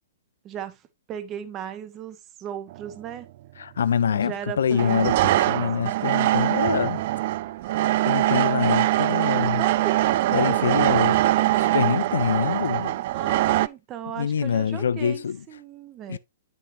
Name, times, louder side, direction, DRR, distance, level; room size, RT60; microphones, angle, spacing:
voice 1, 0.4-3.3 4.1-6.1 9.3-11.8 13.1-16.2, right 10 dB, 30° right, 1.1 m, -37 dB
sound 1, 2.7-2.9 4.7-13.7, right 15 dB, 50° right, 0.3 m, -22 dB
voice 2, 3.6-7.0 8.0-9.6 10.3-11.2 11.6-12.9 14.2-15.4 16.1-16.2, left 7 dB, 75° left, 0.4 m, -25 dB
8.3 x 6.3 x 2.7 m
hypercardioid pair, 125°, 0 cm